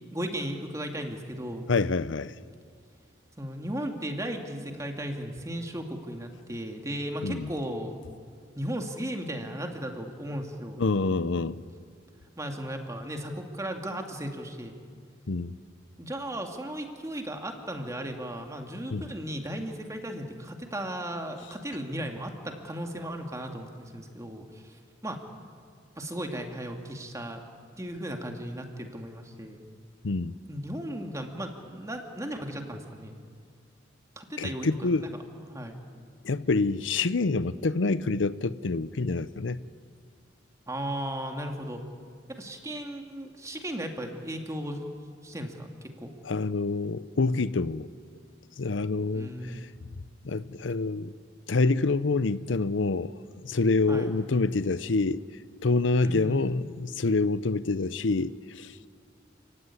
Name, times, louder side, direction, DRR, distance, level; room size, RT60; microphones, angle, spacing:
voice 1, 0.1-1.7 3.4-8.0 8.6-10.8 12.4-14.8 16.0-25.3 26.0-27.4 27.8-29.6 30.4-33.2 34.2-35.8 40.7-41.8 42.3-44.8 45.2-46.1 49.1-49.7 53.9-54.1 56.0-56.5, right 1 dB, 15° right, 3 dB, 2.2 m, -36 dB
voice 2, 1.7-2.3 7.2-7.5 10.8-11.6 15.3-15.6 18.9-19.1 30.0-30.3 34.4-35.1 36.2-39.6 46.2-47.9 48.6-49.6 50.2-51.1 51.5-53.1 53.4-55.2 55.6-58.9, left 3 dB, 90° left, 16 dB, 0.7 m, -27 dB
29.0 x 16.0 x 9.8 m, 2.1 s
head